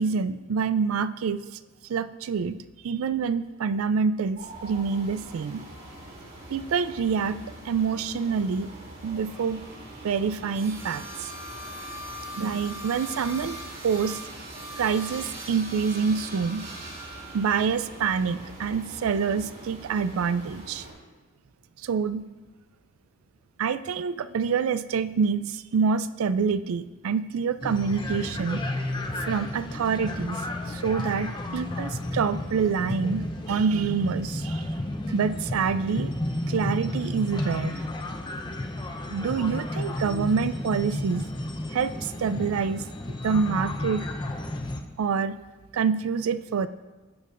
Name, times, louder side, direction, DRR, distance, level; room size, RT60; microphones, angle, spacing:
voice 1, 0.0-1.4 1.9-2.6 2.8-5.6 6.5-8.7 9.0-9.6 10.0-11.3 12.3-14.2 14.8-16.7 17.3-20.9 21.8-22.2 23.6-34.7 35.1-36.1 36.5-37.8 39.1-41.3 41.7-42.9 43.2-44.1 45.0-45.4 45.7-46.7, right 5 dB, 80° right, 14 dB, 0.4 m, -27 dB
sound 1, 4.4-20.9, right 1 dB, 45° right, 2.7 m, -41 dB
sound 2, 27.6-44.8, left 1 dB, 20° left, 0.5 m, -32 dB
12.0 x 8.2 x 2.5 m, 1.2 s
head